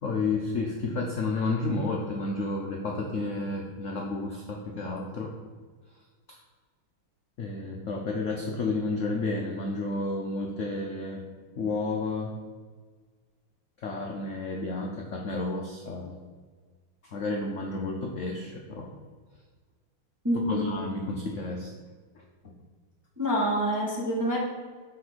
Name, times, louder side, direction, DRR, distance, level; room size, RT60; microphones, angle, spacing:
voice 1, 0.0-5.3 6.3-6.4 7.4-11.2 11.6-12.3 13.8-16.2 17.0-18.9 20.5-21.7 22.1-22.5, left 3 dB, 80° left, 0 dB, 0.6 m, -31 dB
voice 2, 20.2-20.7 23.2-24.4, equal, 20° right, -3 dB, 0.5 m, -26 dB
7.2 x 3.4 x 6.2 m, 1.5 s
omnidirectional pair, 2.3 m